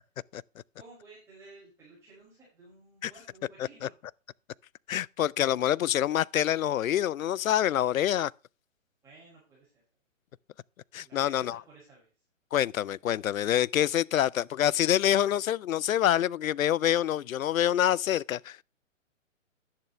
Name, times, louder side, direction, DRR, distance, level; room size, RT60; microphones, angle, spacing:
voice 1, 0.8-3.9 9.0-9.7 11.0-12.1, right 3 dB, 5° right, 5.6 m, -54 dB
voice 2, 4.9-8.3 10.9-11.6 12.5-18.6, left 11 dB, 90° left, 0.6 m, -26 dB
11.0 x 10.5 x 3.3 m
hypercardioid pair, 160°, 39 cm